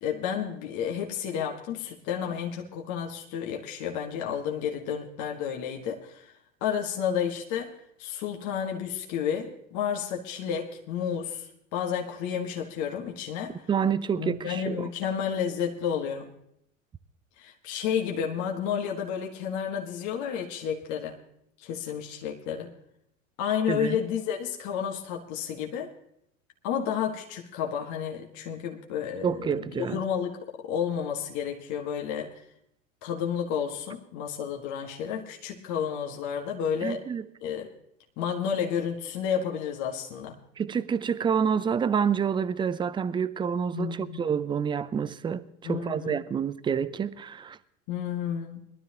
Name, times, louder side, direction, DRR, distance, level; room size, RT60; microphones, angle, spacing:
voice 1, 0.0-6.3 6.6-13.6 14.2-16.3 17.4-21.2 21.6-22.7 23.4-25.9 26.6-32.4 33.0-37.0 37.4-37.7 38.2-40.4 43.7-44.3 45.6-46.2 47.9-48.6, left 8 dB, 45° left, 1.7 m, -31 dB
voice 2, 13.7-14.9 23.7-24.0 29.2-30.0 36.8-37.3 40.6-47.6, right 7 dB, 10° right, 0.5 m, -28 dB
22.0 x 12.5 x 3.0 m
hypercardioid pair, 90°, 40 cm